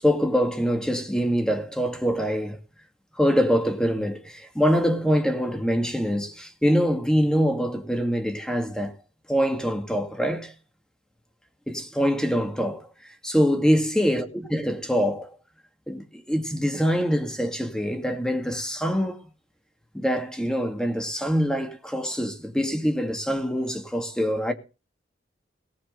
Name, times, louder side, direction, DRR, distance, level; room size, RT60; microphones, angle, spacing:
voice 1, 0.0-2.6 3.1-8.9 9.3-10.5 11.7-14.3 14.5-15.4 15.9-19.3 19.9-24.5, equal, 5° left, 2.1 m, -24 dB
18.5 x 6.6 x 6.7 m
head